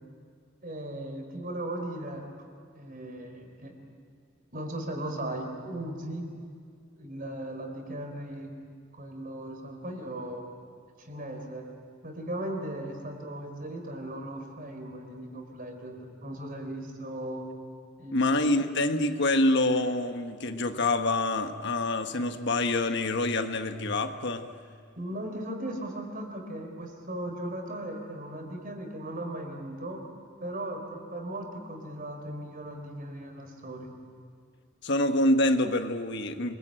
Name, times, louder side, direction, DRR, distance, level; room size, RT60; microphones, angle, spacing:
voice 1, 0.6-2.2 2.7-3.7 4.5-6.3 7.0-8.5 8.9-10.5 11.0-11.7 12.0-17.5 18.0-18.3 25.0-30.0 30.4-33.9, right 1 dB, 45° right, 4 dB, 4.4 m, -37 dB
voice 2, 18.1-24.5 34.8-36.6, left 2 dB, 60° left, 7 dB, 1.4 m, -26 dB
28.0 x 21.5 x 9.0 m, 2.3 s
head